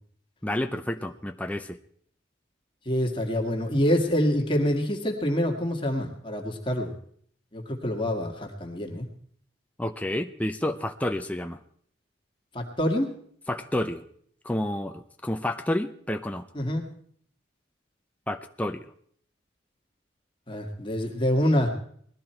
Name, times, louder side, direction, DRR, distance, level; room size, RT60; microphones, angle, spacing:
voice 1, 0.4-1.8 9.8-11.6 13.5-14.0 14.4-16.5 18.3-18.8, left 1 dB, 10° left, 6 dB, 0.6 m, -30 dB
voice 2, 2.9-6.9 7.5-9.1 12.5-13.1 16.6-16.9 20.5-21.8, equal, 25° left, 2 dB, 1.9 m, -26 dB
20.0 x 13.5 x 4.5 m, 0.63 s
head